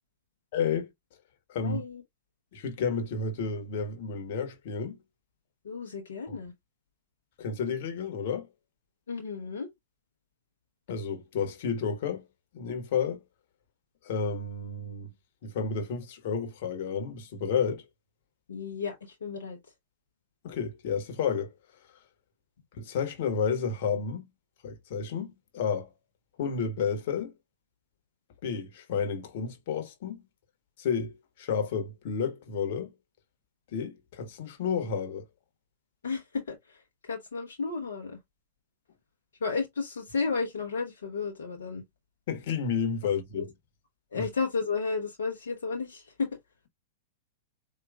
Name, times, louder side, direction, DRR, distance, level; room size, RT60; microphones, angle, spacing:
voice 1, 0.5-0.9 1.5-1.8 2.5-5.0 6.3-6.4 7.4-8.5 10.9-12.2 12.5-13.2 14.0-15.1 15.4-17.8 20.4-21.5 22.8-24.3 24.6-25.9 26.4-27.3 28.4-30.2 30.8-32.9 33.7-35.2 42.3-43.5 44.1-44.3, left 6 dB, 55° left, 1.3 m, -31 dB
voice 2, 1.6-2.0 5.6-6.5 9.1-9.7 18.5-19.6 36.0-38.2 39.4-41.8 43.4-43.5 44.1-46.3, left 4 dB, 75° left, 1.0 m, -33 dB
4.7 x 2.8 x 2.4 m
figure-of-eight pair, 100°, 0 cm